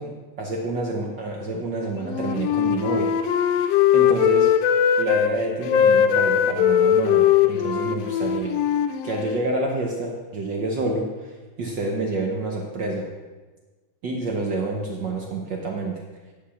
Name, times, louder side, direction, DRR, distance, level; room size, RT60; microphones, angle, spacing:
voice 1, 0.0-3.1 3.5-4.5 5.0-8.6 9.0-13.1 14.0-16.0, right 2 dB, 70° right, 0 dB, 1.0 m, -28 dB
Wind instrument woodwind instrument, 2.0-5.3 5.6-9.4, left 9 dB, 80° left, 1.5 m, -20 dB
10.5 x 5.4 x 7.2 m, 1.3 s
omnidirectional pair, 3.3 m